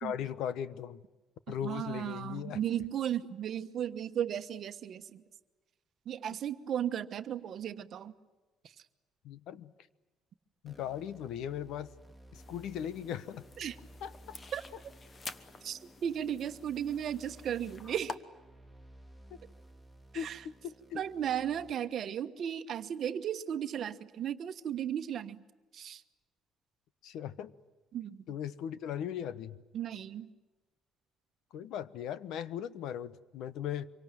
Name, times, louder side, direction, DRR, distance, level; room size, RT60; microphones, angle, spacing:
voice 1, 0.0-1.0 1.5-2.6 9.2-9.7 10.6-11.9 12.3-13.4 14.0-14.4 20.1-21.0 27.0-27.5 28.3-29.6 31.5-33.9, left 9 dB, 70° left, 1.1 m, -38 dB
voice 2, 1.6-5.2 6.1-8.1 13.6-13.7 14.5-14.6 15.6-18.2 20.1-20.4 20.9-25.4 25.7-26.0 27.9-28.2 29.7-30.3, right 9 dB, 45° right, 1.2 m, -35 dB
sound 1, 10.7-21.7, right 1 dB, 10° left, 3.3 m, -56 dB
sound 2, 12.3-18.2, left 4 dB, 25° left, 1.1 m, -49 dB
26.0 x 24.0 x 9.2 m
cardioid pair, 175°, 0 cm